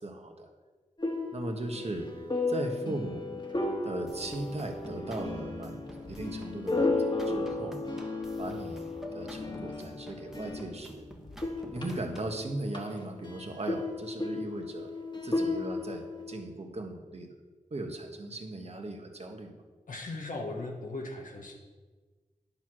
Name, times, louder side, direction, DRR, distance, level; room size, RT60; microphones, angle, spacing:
voice 1, 0.0-0.5 1.3-2.1 2.5-3.2 3.8-7.8 8.4-8.9 9.1-11.1 11.7-14.9 15.2-17.3 17.7-19.5, right 2 dB, 50° right, 3 dB, 1.4 m, -38 dB
sound 1, 1.0-11.0 11.3-16.4, left 2 dB, 35° left, 1.6 m, -34 dB
sound 2, 4.1-12.4, equal, 5° right, 1.3 m, -49 dB
voice 2, 19.9-21.5, left 2 dB, 80° left, 1 dB, 1.3 m, -38 dB
10.5 x 4.5 x 6.2 m, 1.4 s
cardioid pair, 45°, 13 cm